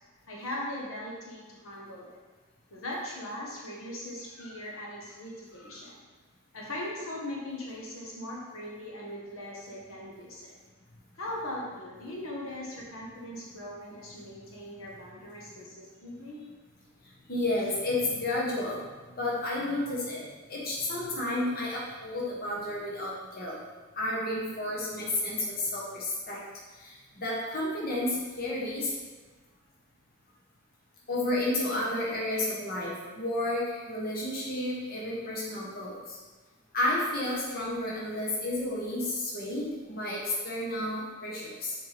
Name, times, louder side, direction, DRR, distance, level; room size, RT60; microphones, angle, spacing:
voice 1, 0.3-2.2 2.7-6.0 6.5-10.5 11.1-16.4, left 1 dB, 85° left, -4 dB, 1.4 m, -39 dB
voice 2, 17.3-18.8 19.2-20.2 20.5-23.6 23.9-26.4 26.8-28.9 31.1-36.2 36.7-41.7, left 1 dB, 45° left, -5 dB, 1.3 m, -31 dB
6.6 x 4.5 x 3.5 m, 1.3 s
head